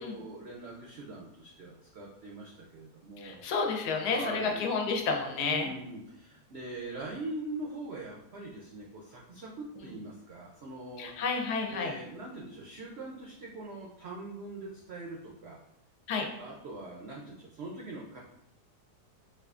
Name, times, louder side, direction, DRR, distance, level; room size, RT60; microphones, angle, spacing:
voice 1, 0.0-3.6 4.1-4.7 5.4-11.1 11.7-15.6 16.4-18.2, right 2 dB, 80° right, -3 dB, 0.5 m, -42 dB
voice 2, 3.2-5.7 9.8-9.9 11.0-11.9 16.1-16.3, left 4 dB, 85° left, 3 dB, 1.2 m, -31 dB
4.5 x 2.4 x 2.3 m, 0.80 s
omnidirectional pair, 1.7 m